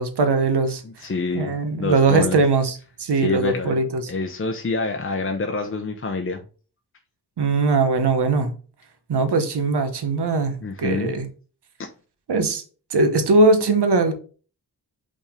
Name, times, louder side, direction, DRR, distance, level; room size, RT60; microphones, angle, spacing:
voice 1, 0.0-1.1 1.3-4.1 7.4-8.5 9.1-11.3 12.3-12.6 12.9-14.1, right 3 dB, 85° right, 1.1 m, -20 dB
voice 2, 0.8-1.5 1.8-2.4 3.2-3.7 4.1-6.4 10.6-11.1 11.8-11.9, left 3 dB, 35° left, 0.7 m, -26 dB
5.4 x 3.6 x 5.0 m
wide cardioid pair, 120°, 39 cm